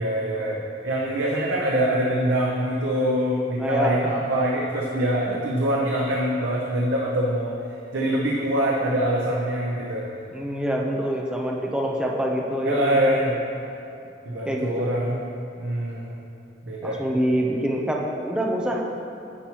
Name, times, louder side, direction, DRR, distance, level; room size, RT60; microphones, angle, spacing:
voice 1, 0.0-7.5 7.9-10.1 12.6-13.4 14.3-15.2 15.6-16.2 16.7-17.0, right 1 dB, 90° right, -3 dB, 0.7 m, -24 dB
voice 2, 3.6-4.1 10.3-13.1 14.5-14.9 16.8-18.8, equal, 5° right, -1 dB, 0.6 m, -25 dB
9.9 x 5.9 x 2.9 m, 2.7 s
head